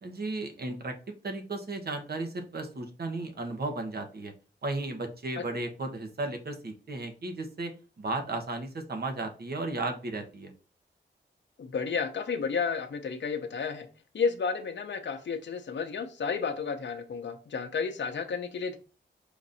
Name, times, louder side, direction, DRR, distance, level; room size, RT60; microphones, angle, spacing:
voice 1, 0.0-1.0 1.2-4.3 4.6-7.7 8.0-10.5, right 2 dB, 55° right, 5 dB, 1.0 m, -34 dB
voice 2, 11.6-13.9 14.1-18.8, left 5 dB, 65° left, 4 dB, 0.7 m, -32 dB
5.1 x 2.6 x 4.0 m, 0.36 s
wide cardioid pair, 75°, 20 cm